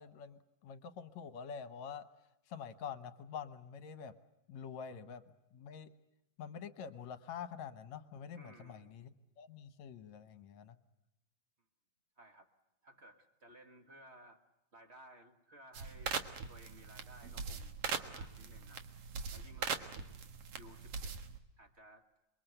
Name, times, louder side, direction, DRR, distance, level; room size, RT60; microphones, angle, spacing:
voice 1, 0.0-2.0 2.5-4.1 4.5-5.2 5.5-5.9 6.4-9.1 9.4-10.8, left 7 dB, 65° left, 11 dB, 2.2 m, -46 dB
voice 2, 8.3-9.0 12.2-12.5 12.8-14.4 14.7-16.1 16.5-18.8 19.3-20.2 20.5-21.2 21.6-22.0, right 1 dB, 30° right, 6 dB, 1.2 m, -58 dB
sound 1, 15.7-21.4, right 5 dB, 55° right, 2.2 m, -41 dB
28.5 x 23.0 x 7.9 m, 0.88 s
omnidirectional pair, 3.7 m